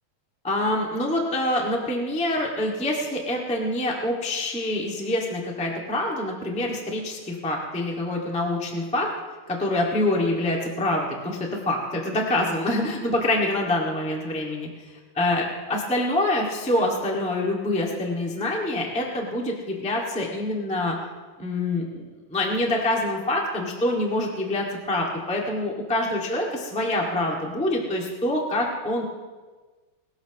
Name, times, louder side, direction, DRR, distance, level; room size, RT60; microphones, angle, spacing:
voice 1, 0.4-9.1 9.5-14.7 15.1-20.9 21.4-29.0, left 1 dB, 5° left, -1 dB, 0.6 m, -26 dB
21.0 x 13.0 x 3.1 m, 1.3 s
omnidirectional pair, 4.3 m